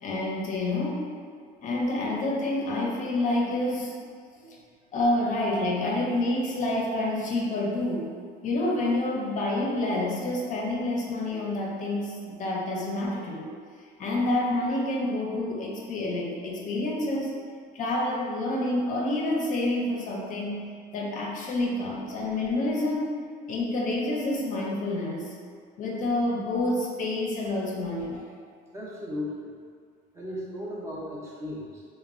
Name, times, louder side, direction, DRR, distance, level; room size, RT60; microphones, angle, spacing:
voice 1, 0.0-1.1 1.6-3.9 4.4-4.6 4.9-8.1 8.4-13.5 14.0-17.3 17.7-20.6 20.9-23.2 23.5-25.3 25.8-28.2, left 1 dB, 40° left, -2 dB, 0.5 m, -28 dB
voice 2, 28.7-29.5 30.1-31.8, left 1 dB, 15° right, -6 dB, 0.5 m, -36 dB
2.9 x 2.0 x 2.4 m, 2.1 s
supercardioid pair, 105°, 20 cm